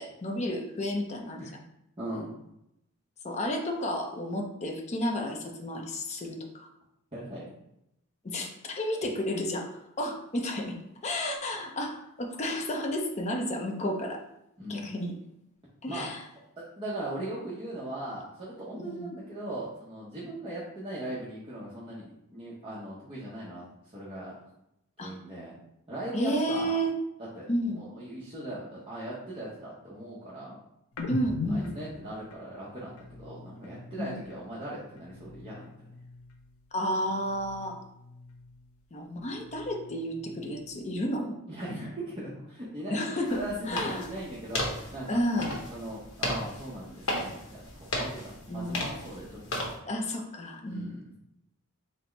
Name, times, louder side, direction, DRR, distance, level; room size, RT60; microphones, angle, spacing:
voice 1, 0.0-1.4 3.2-6.7 8.2-9.7 10.0-10.8 11.0-14.2 14.7-15.1 15.8-16.2 18.8-19.1 25.0-25.1 26.1-26.9 27.5-27.8 31.1-31.8 34.0-34.2 36.7-37.8 38.9-41.4 42.9-44.1 45.1-45.5 48.5-48.9 49.9-51.0, equal, 30° left, 2 dB, 0.5 m, -31 dB
voice 2, 2.0-2.3 7.1-7.4 14.6-14.8 15.9-16.1 16.6-24.4 25.0-25.5 25.9-26.8 27.3-30.6 31.5-32.9 33.2-35.6 41.5-43.0 43.3-45.2 45.7-49.6 50.7-51.1, right 1 dB, 25° right, -8 dB, 0.8 m, -39 dB
sound 1, 30.9-34.5 34.8-36.6 36.9-38.8 39.1-41.0, left 3 dB, 90° left, 0.6 m, -42 dB
sound 2, 43.3-49.7, left 1 dB, 70° left, 0.9 m, -35 dB
4.2 x 2.0 x 4.4 m, 0.82 s
head